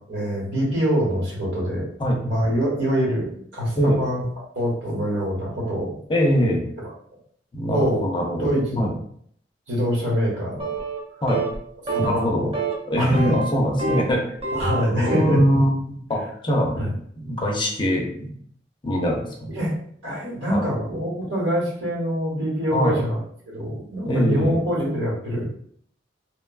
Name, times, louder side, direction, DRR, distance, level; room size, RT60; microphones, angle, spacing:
voice 1, 0.1-1.8 2.2-4.2 4.5-6.0 7.7-8.0 8.3-8.9 9.7-10.7 11.9-12.5 13.0-13.4 14.5-15.6 16.8-16.9 19.5-19.7 20.0-23.2 23.5-25.4, equal, 75° right, -5 dB, 1.2 m, -24 dB
voice 2, 6.1-6.7 7.5-8.5 8.8-8.9 11.2-11.5 12.0-12.5 12.8-14.2 14.9-16.9 17.2-18.3 18.8-19.6 20.5-20.6 22.7-23.0 24.0-24.6, equal, 25° left, 0 dB, 0.5 m, -23 dB
sound 1, 10.6-11.0 11.3-11.6 11.9-12.2 12.5-12.8 13.1-14.1 14.4-15.4, right 3 dB, 30° right, 0.5 m, -27 dB
3.1 x 2.2 x 2.3 m, 0.63 s
head